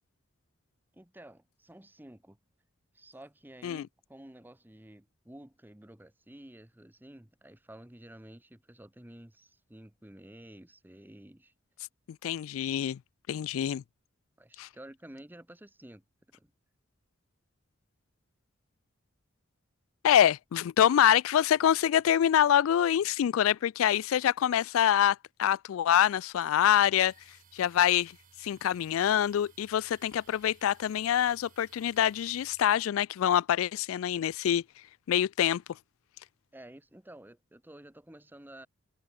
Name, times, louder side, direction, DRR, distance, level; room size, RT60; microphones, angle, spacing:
voice 1, 0.9-2.4 2.9-11.5 14.4-16.0 16.3-16.5 36.5-38.7, right 1 dB, 10° right, 0.9 m, -51 dB
voice 2, 12.2-13.0 13.3-13.8 14.6-14.7 20.0-27.1 27.5-28.1 28.4-34.6 35.1-35.6, left 10 dB, 85° left, 0.3 m, -25 dB
sound 1, 27.0-32.7, right 5 dB, 40° right, 5.8 m, -61 dB
head